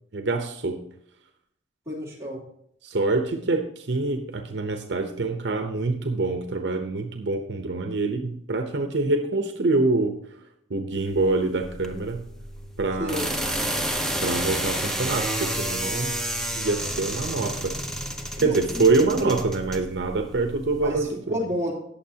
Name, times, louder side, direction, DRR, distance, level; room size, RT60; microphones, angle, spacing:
voice 1, 0.1-0.8 2.8-10.2 10.7-12.3 12.8-13.3 14.2-16.1 16.6-17.8 18.4-21.4, right 3 dB, 60° right, 6 dB, 0.8 m, -25 dB
voice 2, 1.8-2.4 13.0-13.3 18.4-19.3 20.8-21.7, equal, 15° right, -6 dB, 3.1 m, -30 dB
sound 1, 10.9-21.0, right 1 dB, 5° left, 0.7 m, -31 dB
18.0 x 6.9 x 2.8 m, 0.75 s
head